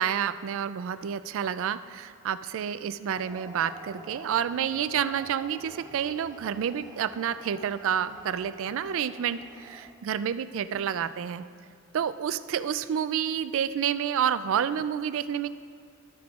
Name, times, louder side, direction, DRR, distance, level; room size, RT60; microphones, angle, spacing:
voice 1, 0.0-11.4 11.9-15.5, right 8 dB, 65° right, 13 dB, 0.3 m, -29 dB
sound 1, 3.0-10.2, right 2 dB, 15° right, 0.7 m, -49 dB
13.0 x 9.5 x 2.4 m, 2.3 s
head